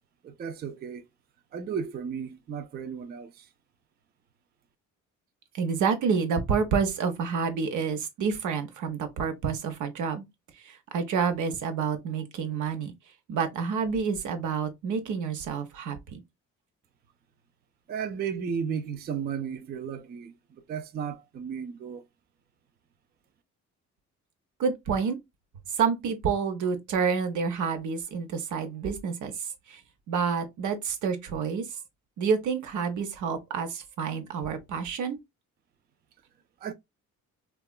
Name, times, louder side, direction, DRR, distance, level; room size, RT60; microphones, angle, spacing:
voice 1, 0.2-1.0 1.5-3.5 17.9-22.0 36.6-36.7, right 7 dB, 35° right, 0.4 m, -34 dB
voice 2, 5.5-10.2 10.6-12.9 13.3-16.2 24.6-25.2 25.7-29.8 30.1-31.7 32.2-35.2, right 6 dB, 75° right, 0.7 m, -28 dB
2.8 x 2.3 x 2.2 m
cardioid pair, 90°, 30 cm